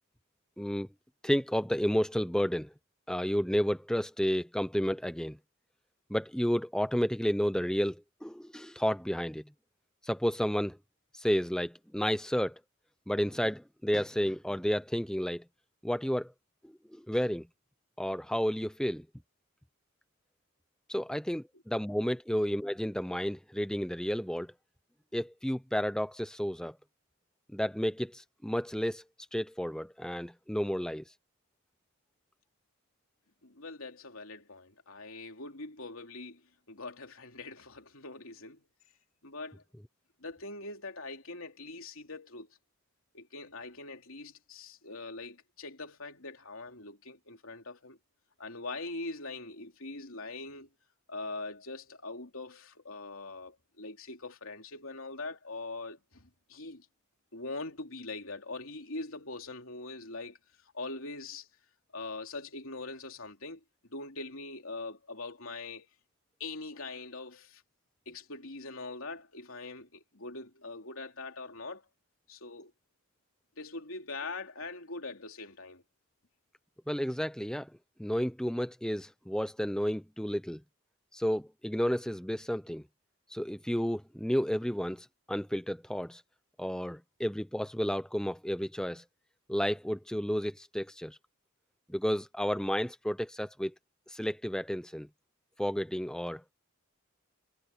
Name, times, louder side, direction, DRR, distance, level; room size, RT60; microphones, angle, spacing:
voice 1, 0.6-0.9 1.2-2.7 3.1-5.4 6.1-9.4 10.0-10.8 11.1-12.6 13.1-15.4 15.8-16.3 16.6-17.5 18.0-19.0 20.9-24.5 25.1-26.8 27.5-29.0 29.3-31.0 76.9-77.7 78.0-80.6 81.1-82.8 83.3-86.2 86.6-89.0 89.5-91.2 91.9-93.7 94.1-95.1 95.6-96.4, equal, 5° left, 0.7 m, -31 dB
voice 2, 33.4-38.6 39.2-39.6 40.2-42.6 43.1-48.0 48.4-50.7 51.1-56.9 57.3-60.4 60.7-61.5 61.9-63.6 63.9-65.9 66.4-67.6 68.0-71.8 72.3-72.7 73.6-75.8, left 3 dB, 75° left, 3.2 m, -42 dB
head